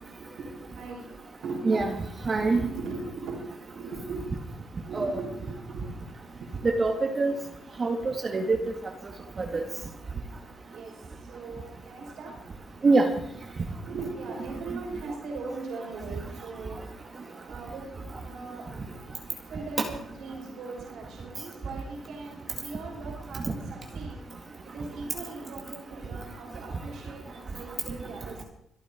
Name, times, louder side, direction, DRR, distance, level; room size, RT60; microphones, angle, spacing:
voice 1, 0.2-1.1 1.4-2.0 2.5-3.4 3.6-4.2 4.8-5.9 7.8-7.9 10.7-12.4 13.8-16.8 17.4-18.7 19.5-24.2 24.6-28.4, right 3 dB, 75° right, -2 dB, 6.0 m, -39 dB
voice 2, 1.7-2.6 4.9-5.2 6.6-7.3 7.8-8.6 9.4-9.6 12.8-13.1 23.4-23.5, right 3 dB, 35° right, 3 dB, 2.0 m, -24 dB
25.5 x 9.2 x 4.5 m, 0.75 s
cardioid pair, 90°, 0 cm